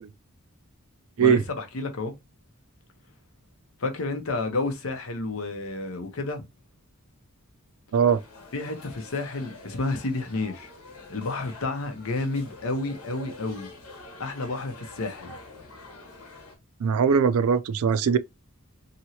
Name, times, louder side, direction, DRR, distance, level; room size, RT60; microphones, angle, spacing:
voice 1, 1.2-2.1 3.8-6.4 8.5-10.7 11.1-13.7 14.2-15.4, left 2 dB, 65° left, 0.8 m, -30 dB
sound 1, 8.0-16.5, left 2 dB, 85° left, 1.1 m, -46 dB
voice 2, 16.8-18.2, right 6 dB, 75° right, 0.4 m, -20 dB
2.9 x 2.7 x 2.7 m
head